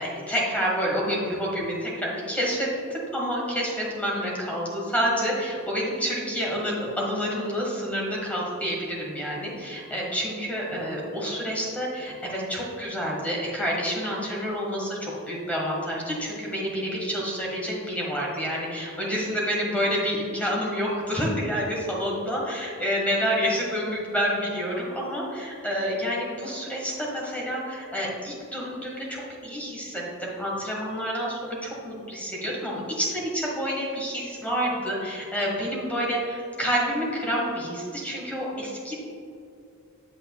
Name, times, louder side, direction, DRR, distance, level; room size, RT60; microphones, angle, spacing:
voice 1, 0.0-39.0, equal, 5° left, -4 dB, 1.5 m, -28 dB
8.4 x 7.5 x 2.4 m, 2.5 s
head